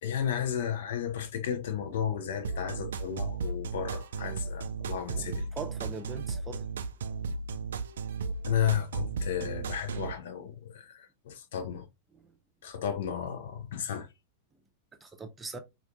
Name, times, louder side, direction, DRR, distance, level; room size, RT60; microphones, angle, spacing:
voice 1, 0.0-5.5 8.5-11.9 12.6-14.1, left 8 dB, 60° left, 0.6 m, -33 dB
sound 1, 2.4-10.1, right 4 dB, 65° right, 0.3 m, -35 dB
voice 2, 5.5-6.6 12.1-12.3 15.0-15.6, right 4 dB, 15° right, 0.6 m, -40 dB
4.4 x 2.4 x 2.3 m
figure-of-eight pair, 90°, 0 cm